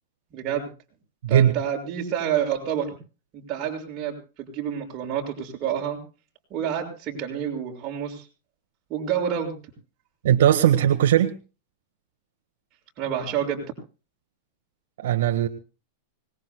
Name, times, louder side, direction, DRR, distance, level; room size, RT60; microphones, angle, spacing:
voice 1, 0.3-0.7 1.3-2.9 3.3-6.0 6.5-8.3 8.9-9.5 13.0-13.6, right 9 dB, 30° right, 0 dB, 6.4 m, -28 dB
voice 2, 1.2-1.5 10.2-11.3 15.0-15.5, right 10 dB, 80° right, 4 dB, 1.5 m, -19 dB
25.0 x 20.0 x 2.3 m, 0.34 s
supercardioid pair, 160°, 0 cm